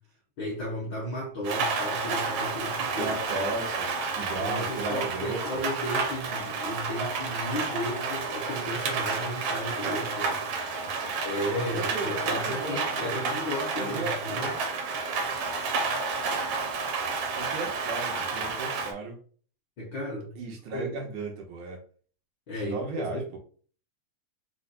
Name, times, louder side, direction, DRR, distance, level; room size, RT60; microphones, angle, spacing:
voice 1, 0.4-3.2 4.4-10.4 11.2-14.5 19.8-21.0 22.5-23.1, equal, 65° left, -3 dB, 1.1 m, -34 dB
Rain, 1.4-18.9, right 4 dB, 70° right, 1.5 m, -30 dB
voice 2, 3.0-5.6 10.8-11.1 11.7-13.5 13.8-14.2 17.4-19.2 20.4-21.8 22.5-23.4, right 2 dB, 90° right, 0 dB, 2.7 m, -36 dB
5.6 x 2.2 x 4.0 m, 0.42 s
omnidirectional pair, 3.4 m